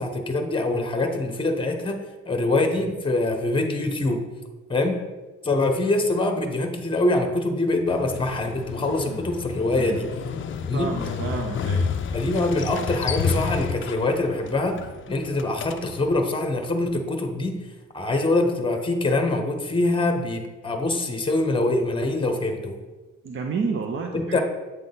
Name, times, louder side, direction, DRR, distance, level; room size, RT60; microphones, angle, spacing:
voice 1, 0.0-4.2 4.7-5.0 5.4-10.1 10.7-10.9 12.1-14.8 15.1-17.6 17.9-22.8 24.1-24.4, left 2 dB, 15° left, 5 dB, 1.0 m, -24 dB
Motorcycle, 7.9-16.2, left 5 dB, 40° left, 0.5 m, -30 dB
voice 2, 10.7-11.9 23.2-24.4, right 4 dB, 40° right, 3 dB, 0.7 m, -30 dB
8.0 x 3.7 x 3.9 m, 1.3 s
cardioid pair, 90°, 30 cm